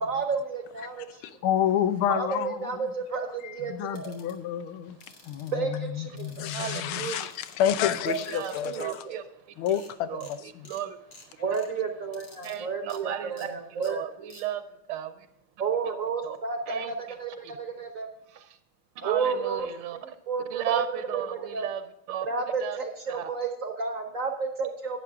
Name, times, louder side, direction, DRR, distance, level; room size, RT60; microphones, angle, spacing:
voice 1, 0.0-1.2 2.1-4.1 5.5-6.5 8.1-8.2 8.6-9.2 11.4-14.3 15.6-18.1 19.0-19.7 19.9-20.6 20.9-21.7 22.3-25.0, right 5 dB, 50° right, 1.1 m, -31 dB
voice 2, 1.2-2.7 3.4-5.0 5.3-9.1 9.6-10.4, left 10 dB, 80° left, 1.6 m, -29 dB
sound 1, 3.9-4.3 5.0-5.5 6.2-6.8 7.1-7.6 8.1-9.0 9.4-9.5 9.7-9.9 10.2-10.4 10.6-10.8 11.1-11.7 12.1-12.6 12.9-13.0 13.4-13.5 13.8-13.9 14.3-14.4, left 3 dB, 50° left, 2.2 m, -51 dB
voice 3, 6.5-7.3 8.3-9.8 10.1-11.4 12.4-14.6 14.9-15.3 16.2-16.4 16.7-16.9 17.4-17.5 18.3-18.6 19.0-20.0 20.5-21.8 22.1-22.3 22.6-22.8 23.1-23.3, right 10 dB, 85° right, 1.5 m, -35 dB
11.0 x 8.9 x 3.6 m
omnidirectional pair, 2.3 m